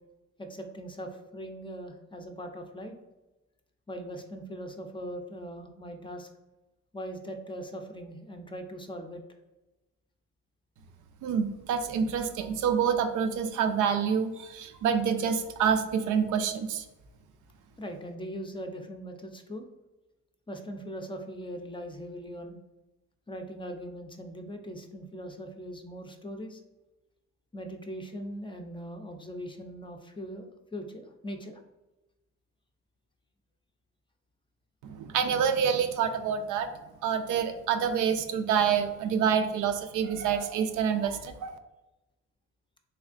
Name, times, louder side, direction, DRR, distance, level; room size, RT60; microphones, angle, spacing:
voice 1, 0.4-3.0 3.9-6.3 6.9-9.2 17.8-19.7 20.5-22.6 23.3-26.6 27.5-31.6, equal, 15° left, 4 dB, 0.5 m, -40 dB
voice 2, 11.2-16.8 34.8-36.7 37.0-41.6, right 7 dB, 80° right, 7 dB, 0.5 m, -27 dB
3.4 x 3.2 x 2.4 m, 1.0 s
cardioid pair, 90°, 30 cm